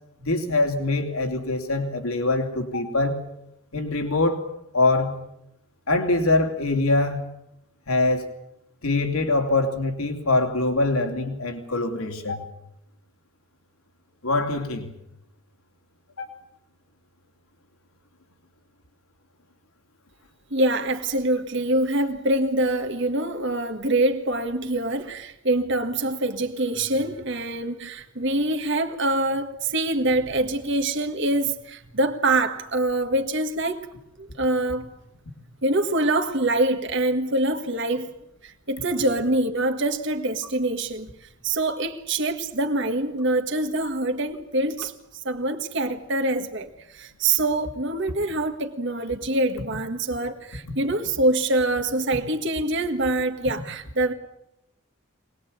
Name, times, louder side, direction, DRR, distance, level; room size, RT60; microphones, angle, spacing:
voice 1, 0.2-3.2 3.7-4.5 4.7-5.1 5.9-7.2 7.9-8.2 8.8-12.4 14.2-14.9 16.2-16.3, left 2 dB, 85° left, 3.2 m, -23 dB
voice 2, 20.5-33.9 34.2-34.9 35.6-38.1 38.4-41.1 41.4-44.9 45.2-54.1, right 2 dB, 55° right, 1.7 m, -25 dB
24.0 x 20.0 x 8.7 m
head